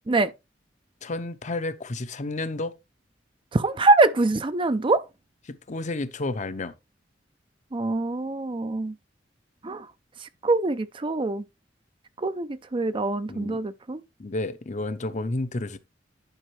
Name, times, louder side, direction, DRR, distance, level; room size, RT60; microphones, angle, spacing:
voice 1, 1.0-2.8 5.5-6.7 13.3-13.6 14.2-15.8, left 2 dB, 40° left, 0.7 m, -31 dB
voice 2, 3.5-5.0 7.7-8.9 9.6-9.9 10.4-11.4 12.2-14.0, right 2 dB, 30° right, 0.5 m, -24 dB
11.0 x 5.2 x 3.2 m
head